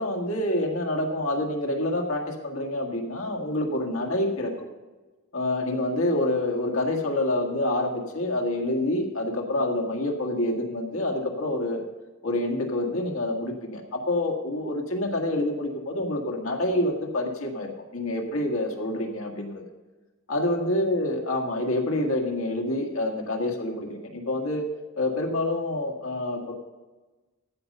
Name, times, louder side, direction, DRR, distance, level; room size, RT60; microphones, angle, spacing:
voice 1, 0.0-4.7 5.3-11.8 12.2-19.7 20.3-24.7 24.9-26.5, left 1 dB, 90° left, 2 dB, 2.0 m, -27 dB
14.5 x 5.5 x 6.6 m, 1.2 s
head